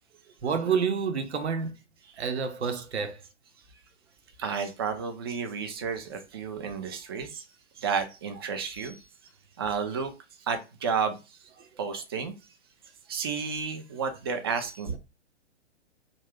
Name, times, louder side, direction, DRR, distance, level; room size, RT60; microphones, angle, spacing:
voice 1, 0.4-1.7 2.2-3.2 14.9-15.0, right 6 dB, 65° right, 0.8 m, -28 dB
voice 2, 4.4-7.5 7.8-9.1 9.6-10.1 10.4-11.5 11.8-12.3 13.1-15.0, right 6 dB, 20° right, 0.3 m, -32 dB
2.7 x 2.3 x 3.4 m
figure-of-eight pair, 115°, 35 cm